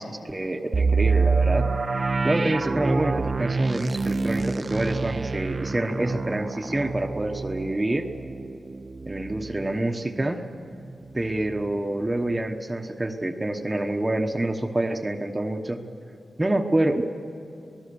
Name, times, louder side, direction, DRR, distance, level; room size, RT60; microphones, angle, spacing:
voice 1, 0.0-8.1 9.0-10.5 11.1-15.8 16.4-17.0, right 1 dB, 15° right, 5 dB, 1.1 m, -27 dB
sound 1, 0.7-10.5 10.8-10.9 11.4-11.7, right 4 dB, 35° right, 0.6 m, -26 dB
27.0 x 19.0 x 6.9 m, 2.8 s
wide cardioid pair, 135°, 0 cm